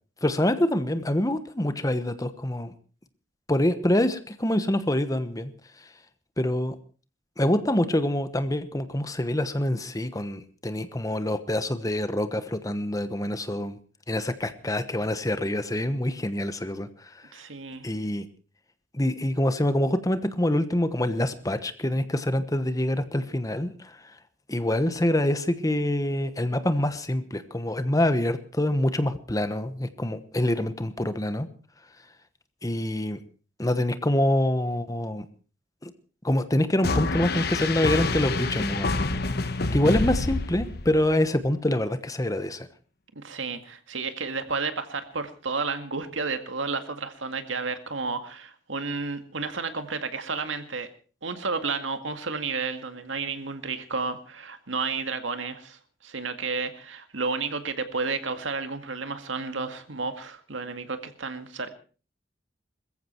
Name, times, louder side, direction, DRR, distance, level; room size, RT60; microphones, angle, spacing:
voice 1, 0.2-2.7 3.5-5.5 6.4-6.8 7.4-13.8 14.1-17.2 17.8-18.2 18.9-24.0 24.5-31.5 32.6-33.2 33.6-35.2 35.8-35.9 36.2-38.9 39.7-42.7, left 1 dB, 20° left, 11 dB, 1.1 m, -26 dB
voice 2, 17.3-17.9 43.2-50.9 51.2-61.7, right 4 dB, 80° right, 8 dB, 2.0 m, -32 dB
sound 1, 36.8-41.1, left 3 dB, 55° left, 1.3 m, -27 dB
21.5 x 14.5 x 4.5 m, 0.39 s
head